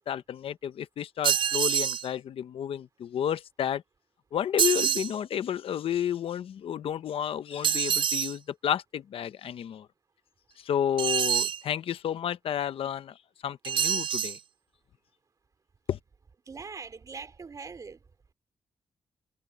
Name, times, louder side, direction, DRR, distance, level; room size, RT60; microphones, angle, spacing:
voice 1, 0.1-3.8 4.3-9.9 10.6-13.2 13.4-14.4 15.9-16.0, left 9 dB, 70° left, 0.8 m, -31 dB
sound 1, 1.2-2.1 4.6-5.1 7.6-8.3 11.0-11.6 13.6-14.4, right 9 dB, 55° right, 0.4 m, -26 dB
voice 2, 16.5-18.0, right 5 dB, 35° right, 3.5 m, -42 dB
wide cardioid pair, 135°, 10 cm